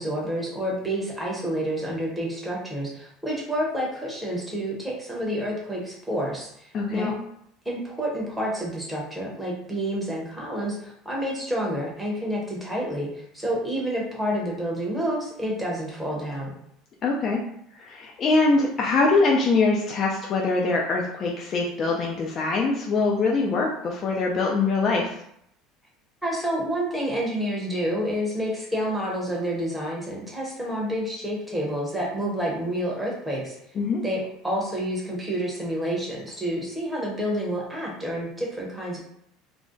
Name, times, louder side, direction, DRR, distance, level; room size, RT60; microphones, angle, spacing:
voice 1, 0.0-7.2 7.7-16.5 26.2-33.5 34.0-39.0, equal, 5° right, -4 dB, 0.7 m, -29 dB
voice 2, 6.7-7.1 17.0-17.4 17.8-25.2 33.8-34.0, left 3 dB, 30° left, -1 dB, 0.3 m, -23 dB
2.5 x 2.1 x 3.6 m, 0.72 s
cardioid pair, 170°, 0 cm